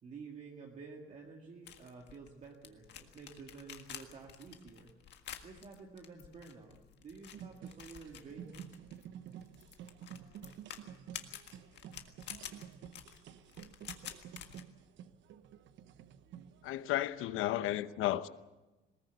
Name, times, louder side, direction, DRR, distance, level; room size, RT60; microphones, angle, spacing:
voice 1, 0.0-4.9 5.4-8.7, right 4 dB, 35° right, 2.0 m, -51 dB
sound 1, 1.7-14.6, left 9 dB, 55° left, 1.7 m, -50 dB
sound 2, 7.3-17.4, right 9 dB, 65° right, 1.0 m, -51 dB
voice 2, 16.6-18.3, left 13 dB, 75° left, 0.9 m, -33 dB
20.5 x 18.5 x 8.0 m
cardioid pair, 165°, 21 cm